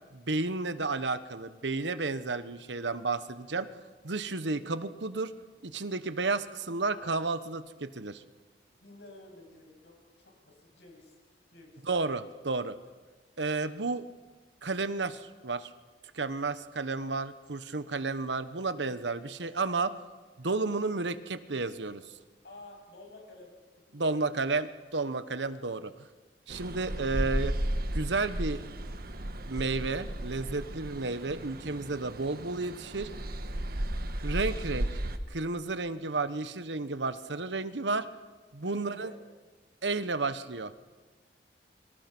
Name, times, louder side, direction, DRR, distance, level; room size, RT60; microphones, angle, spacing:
voice 1, 0.1-3.7 4.0-5.3 5.6-8.2 11.8-12.8 13.4-14.0 14.6-15.7 16.1-19.9 20.4-22.0 23.9-25.9 26.5-27.5 27.9-28.6 29.5-33.1 34.2-34.9 35.3-38.1 38.5-39.1 39.8-40.7, right 3 dB, 90° right, 12 dB, 1.2 m, -32 dB
voice 2, 6.9-7.2 8.8-11.2 11.5-11.8 12.2-12.4 22.4-23.5 23.9-24.5 25.3-26.1 38.6-39.2, left 2 dB, 75° left, 2 dB, 7.9 m, -52 dB
sound 1, 26.5-35.2, right 1 dB, 60° right, 1.5 m, -34 dB
29.5 x 24.5 x 6.2 m, 1.3 s
head